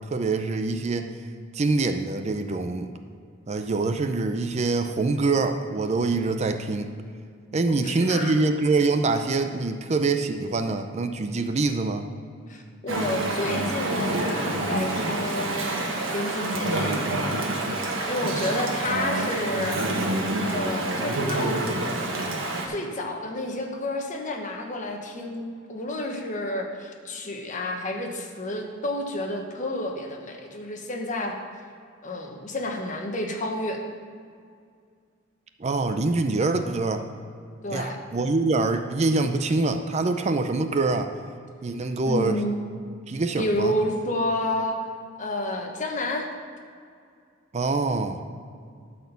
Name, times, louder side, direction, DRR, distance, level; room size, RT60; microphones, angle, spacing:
voice 1, 0.1-1.1 1.5-2.9 3.5-6.9 7.5-12.0 35.6-37.0 37.7-41.1 41.6-42.4 43.1-43.7 47.5-48.2, right 3 dB, 35° right, 7 dB, 0.5 m, -25 dB
voice 2, 7.7-8.4 12.5-15.8 16.1-17.4 18.0-20.0 20.4-21.6 22.6-31.4 32.0-33.8 37.6-38.0 42.1-42.6 43.4-44.8 45.2-46.3, left 1 dB, 40° left, 2 dB, 1.2 m, -30 dB
Chatter / Stream, 12.9-22.7, right 2 dB, 90° right, 1.5 m, -27 dB
12.0 x 4.4 x 6.8 m, 2.2 s
head